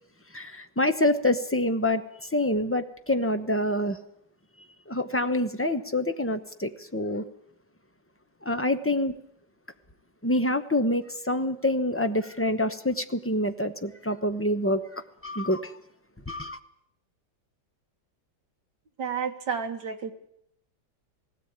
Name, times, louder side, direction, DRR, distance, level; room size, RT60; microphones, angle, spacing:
voice 1, 0.3-4.0 4.9-7.2 8.4-9.1 10.2-15.7 16.3-16.6, left 1 dB, 15° left, 0.4 m, -26 dB
voice 2, 19.0-20.1, right 6 dB, 70° right, 2.2 m, -31 dB
18.5 x 17.0 x 8.8 m
omnidirectional pair, 2.0 m